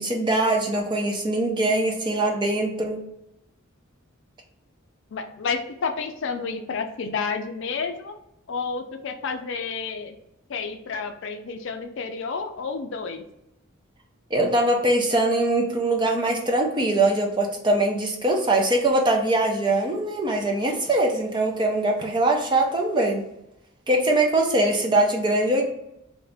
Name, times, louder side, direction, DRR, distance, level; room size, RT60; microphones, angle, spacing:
voice 1, 0.0-3.0 14.3-23.2 23.9-25.6, right 2 dB, 25° right, 2 dB, 0.5 m, -22 dB
voice 2, 5.1-8.2 8.5-10.2 10.5-13.2, left 5 dB, 60° left, 6 dB, 0.4 m, -30 dB
2.7 x 2.5 x 3.3 m, 0.83 s
head